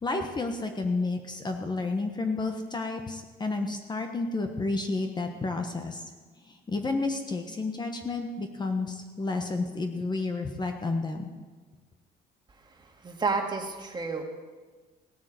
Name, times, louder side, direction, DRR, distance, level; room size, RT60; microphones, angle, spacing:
voice 1, 0.0-6.0 6.4-11.3, left 3 dB, 25° left, 5 dB, 1.2 m, -31 dB
voice 2, 13.0-14.2, right 4 dB, 25° right, 3 dB, 2.1 m, -30 dB
17.5 x 7.3 x 7.7 m, 1.4 s
cardioid pair, 110°, 17 cm